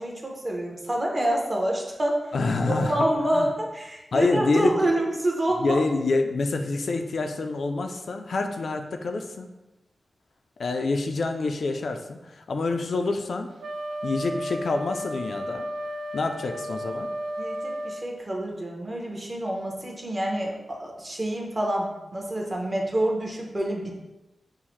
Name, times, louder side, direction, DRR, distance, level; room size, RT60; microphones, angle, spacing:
voice 1, 0.0-2.3 2.9-5.8 17.4-23.9, right 1 dB, 30° right, 0 dB, 0.8 m, -27 dB
voice 2, 2.3-3.1 3.3-3.5 4.1-4.7 5.6-9.5 10.6-13.5 14.0-15.7 16.1-17.1, left 3 dB, 70° left, 5 dB, 0.3 m, -27 dB
Wind instrument woodwind instrument, 13.6-18.0, equal, 75° right, 0.3 m, -33 dB
5.5 x 2.1 x 3.0 m, 0.99 s
wide cardioid pair, 95°, 0 cm